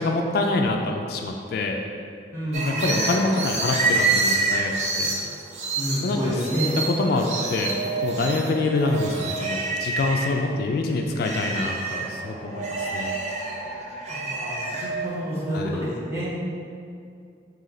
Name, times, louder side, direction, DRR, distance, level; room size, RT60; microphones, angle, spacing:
voice 1, 0.0-1.8 2.7-5.1 6.0-6.2 6.8-7.7 8.0-13.1 15.5-15.8, left 2 dB, 60° left, 3 dB, 0.3 m, -26 dB
voice 2, 2.3-2.7 5.8-6.7 14.1-16.3, equal, 15° right, -9 dB, 1.1 m, -28 dB
sound 1, 2.5-10.4 10.8-15.1, right 3 dB, 40° right, 0.6 m, -28 dB
4.2 x 2.9 x 3.9 m, 2.4 s
head